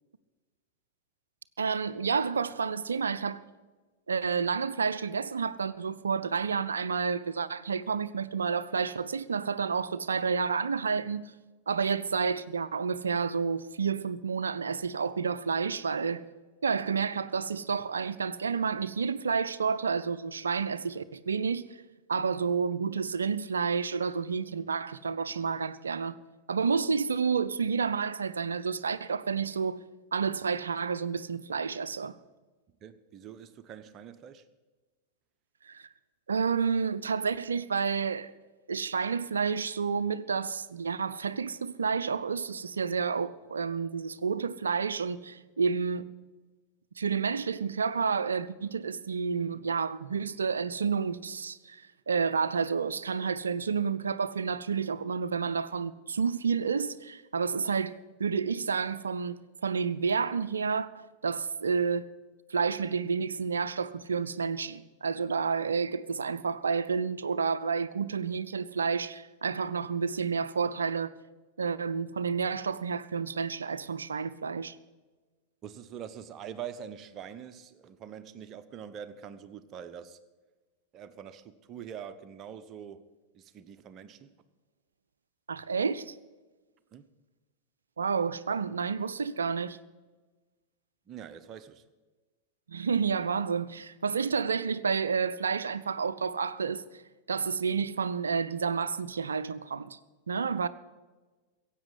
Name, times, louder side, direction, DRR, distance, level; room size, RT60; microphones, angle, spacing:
voice 1, 1.6-3.4 4.1-11.3 11.7-16.2 16.6-21.7 22.1-26.2 26.5-29.8 30.1-32.2 35.6-35.9 36.3-38.3 38.7-46.1 47.0-62.1 62.5-71.2 71.6-74.8 85.5-86.2 88.0-89.8 92.7-96.8 97.3-100.0 100.3-100.7, right 5 dB, 70° right, 0.5 m, -30 dB
voice 2, 32.8-34.4 75.6-80.2 80.9-83.1 83.3-84.3 86.9-87.1 91.1-91.8, right 8 dB, 30° right, 0.9 m, -44 dB
15.5 x 8.4 x 8.1 m
figure-of-eight pair, 90°, 0 cm